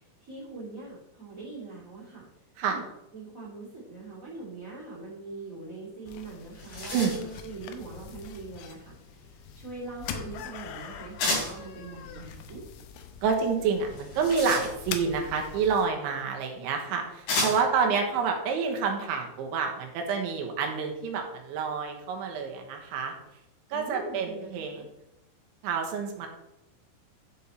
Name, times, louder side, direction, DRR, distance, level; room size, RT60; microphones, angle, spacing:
voice 1, 0.2-2.3 2.7-2.8 3.1-8.9 9.6-12.6 17.8-17.9 23.7-24.8, right 3 dB, 25° right, -7 dB, 2.1 m, -42 dB
sound 1, 6.1-15.9, left 7 dB, 75° left, 2.7 m, -43 dB
sound 2, 6.1-6.2 6.4-7.4 11.2-11.6 13.9-15.1 16.2-16.3 17.3-17.8, left 2 dB, 60° left, 5.0 m, -31 dB
voice 2, 13.2-23.1 23.7-24.9 25.6-26.3, right 5 dB, 80° right, 2 dB, 3.5 m, -28 dB
11.0 x 5.5 x 4.2 m, 0.87 s
omnidirectional pair, 5.4 m